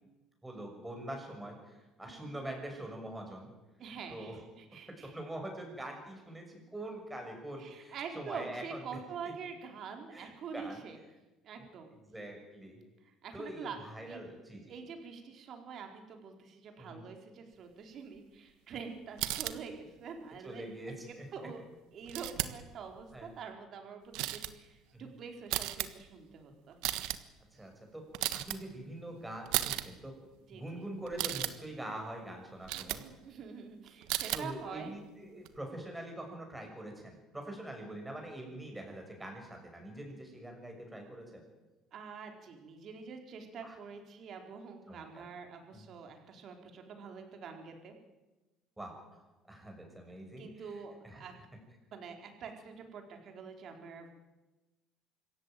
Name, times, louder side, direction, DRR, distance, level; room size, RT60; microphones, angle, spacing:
voice 1, 0.4-3.5 4.1-4.4 5.0-9.0 10.1-10.8 12.0-12.8 13.3-14.7 16.8-17.0 20.4-21.3 23.1-23.3 24.9-25.1 27.5-28.0 28.3-30.1 30.5-33.0 34.3-41.4 43.6-43.7 44.9-45.3 45.7-45.8 48.8-49.2 49.5-50.8 51.0-51.3, right 1 dB, 5° right, 2 dB, 6.6 m, -44 dB
voice 2, 2.1-2.4 3.8-5.1 7.6-11.0 11.4-12.0 13.0-14.2 14.7-20.9 21.3-21.6 21.9-26.8 30.5-30.9 32.7-34.9 41.9-48.0 50.1-51.3 51.9-54.1, right 6 dB, 45° right, 4 dB, 4.2 m, -46 dB
sound 1, 19.2-19.6 22.1-22.6 23.0-23.4 24.1-24.5 25.5-25.9 26.7-27.2 28.1-28.6 29.5-29.9 31.1-31.5 32.6-33.0 34.0-34.4 35.5-35.6, right 16 dB, 75° right, 1.4 m, -34 dB
25.5 x 14.5 x 9.4 m, 1.1 s
cardioid pair, 145°, 0 cm